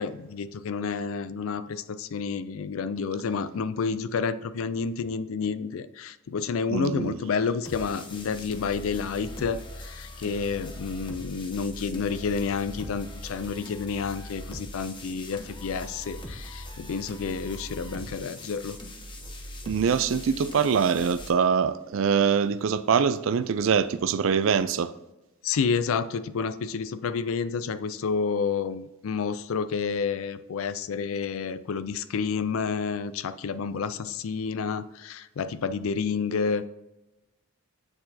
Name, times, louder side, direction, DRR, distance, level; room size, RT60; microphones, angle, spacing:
voice 1, 0.0-18.8 25.4-36.7, left 5 dB, 70° left, 0.4 m, -30 dB
voice 2, 6.7-7.2 19.7-24.9, right 6 dB, 60° right, 0.4 m, -24 dB
sound 1, 7.6-21.3, left 1 dB, 20° left, 0.7 m, -41 dB
7.8 x 4.4 x 2.8 m
head